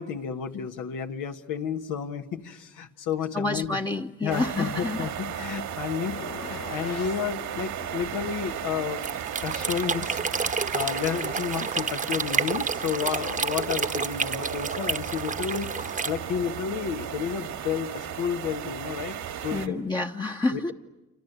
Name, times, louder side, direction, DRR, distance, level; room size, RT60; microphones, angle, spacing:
voice 1, 0.0-3.8 4.2-9.0 9.4-19.2 19.4-19.8 20.5-20.7, left 8 dB, 85° left, 5 dB, 1.5 m, -31 dB
voice 2, 3.3-5.1 19.5-20.7, left 2 dB, 15° left, 2 dB, 0.9 m, -29 dB
sound 1, 4.3-19.7, right 9 dB, 80° right, 1.9 m, -35 dB
sound 2, 6.1-7.3, left 8 dB, 55° left, 1.0 m, -40 dB
sound 3, 9.0-16.1, right 4 dB, 25° right, 1.0 m, -30 dB
28.0 x 25.5 x 8.1 m, 1.1 s
cardioid pair, 90°, 30 cm